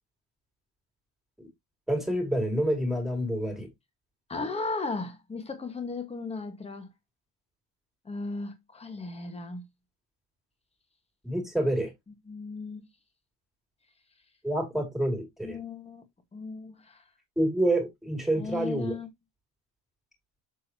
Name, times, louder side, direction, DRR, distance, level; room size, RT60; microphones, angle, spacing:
voice 1, 1.9-3.7 11.2-11.9 14.4-15.6 17.4-19.0, right 1 dB, ahead, 2.6 m, -28 dB
voice 2, 4.3-6.9 8.0-9.7 12.3-12.9 15.4-16.0 16.3-17.0 18.4-19.1, left 3 dB, 15° left, 1.5 m, -36 dB
7.2 x 6.3 x 2.8 m
cardioid pair, 170°, 39 cm